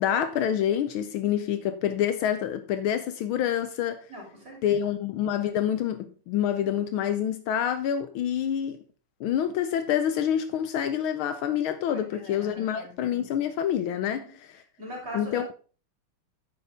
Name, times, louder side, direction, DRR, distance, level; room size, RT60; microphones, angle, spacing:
voice 1, 0.0-4.0 4.6-8.8 9.2-14.5 15.1-15.5, left 10 dB, 75° left, 1.4 m, -27 dB
voice 2, 4.1-4.8 11.9-13.0 14.0-14.3 14.8-15.4, equal, 30° right, 3.5 m, -41 dB
9.6 x 7.0 x 3.5 m
omnidirectional pair, 2.4 m